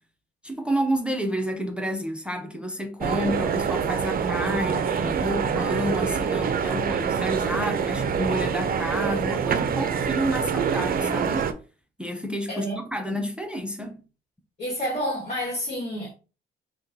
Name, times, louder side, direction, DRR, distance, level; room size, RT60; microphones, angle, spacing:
voice 1, 0.4-11.5 12.0-14.0, equal, 5° right, 0.7 m, -30 dB
sound 1, 3.0-11.5, right 7 dB, 45° right, 0.5 m, -25 dB
voice 2, 12.5-12.8 14.6-16.1, equal, 35° left, 1.6 m, -29 dB
5.8 x 2.3 x 2.6 m
cardioid pair, 90°, 20 cm